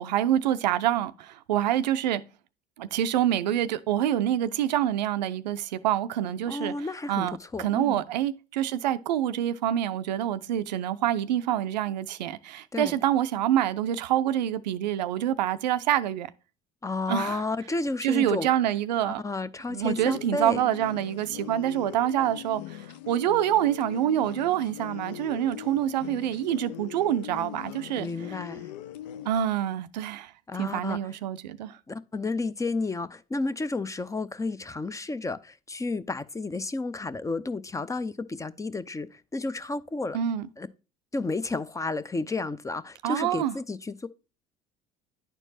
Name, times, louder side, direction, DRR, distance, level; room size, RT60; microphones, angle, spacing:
voice 1, 0.0-2.2 2.8-16.3 17.1-17.4 18.0-19.2 19.7-28.1 29.3-30.3 30.6-31.8 40.1-40.5 43.0-43.6, right 11 dB, 90° right, 0.4 m, -26 dB
voice 2, 6.5-8.0 12.7-13.0 16.8-18.5 19.1-20.6 28.0-28.7 30.5-31.0 31.9-40.2 40.6-40.7 41.1-44.1, left 3 dB, 15° left, 0.4 m, -32 dB
sound 1, 20.0-29.3, left 12 dB, 80° left, 0.4 m, -41 dB
10.0 x 4.5 x 2.7 m
hypercardioid pair, 65°, 21 cm